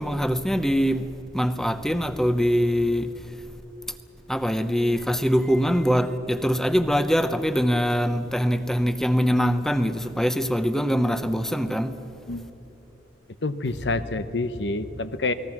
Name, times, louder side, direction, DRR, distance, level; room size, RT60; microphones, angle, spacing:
voice 1, 0.0-3.3 4.3-12.0, equal, 5° left, 0.8 m, -23 dB
voice 2, 13.4-15.3, left 2 dB, 80° left, 1.1 m, -27 dB
28.5 x 20.0 x 6.1 m
head